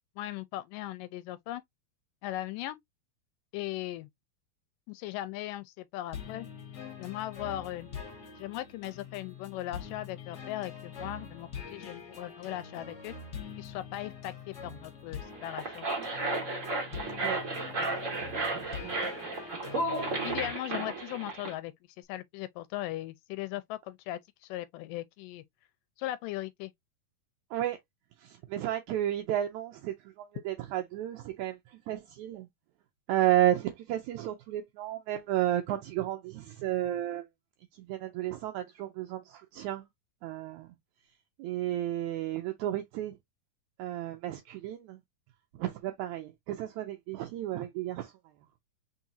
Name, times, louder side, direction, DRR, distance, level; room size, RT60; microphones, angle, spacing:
voice 1, 0.2-1.6 2.2-2.8 3.5-4.1 4.9-6.5 7.0-8.0 8.4-13.1 13.6-15.9 20.2-25.4 26.0-26.7, left 15 dB, 80° left, 2.0 m, -38 dB
sound 1, 6.1-20.5, left 6 dB, 55° left, 1.1 m, -44 dB
sound 2, 15.3-21.5, right 2 dB, 50° right, 0.9 m, -33 dB
voice 2, 18.5-19.0 27.5-27.8 28.2-32.5 33.1-37.3 37.7-39.9 40.2-40.7 41.4-43.2 43.8-45.0 45.6-48.1, right 13 dB, 80° right, 1.7 m, -32 dB
4.7 x 4.3 x 2.6 m
omnidirectional pair, 4.1 m